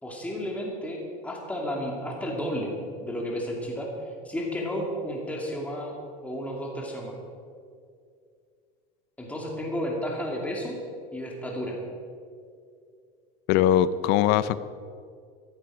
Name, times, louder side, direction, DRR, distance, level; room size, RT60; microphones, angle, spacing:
voice 1, 0.0-2.7 3.0-6.0 6.2-7.1 9.2-10.8 11.1-11.8, equal, 5° left, -1 dB, 2.6 m, -32 dB
voice 2, 13.5-14.6, left 11 dB, 55° left, 16 dB, 0.6 m, -21 dB
16.0 x 11.5 x 4.9 m, 2.3 s
supercardioid pair, 120°, 20 cm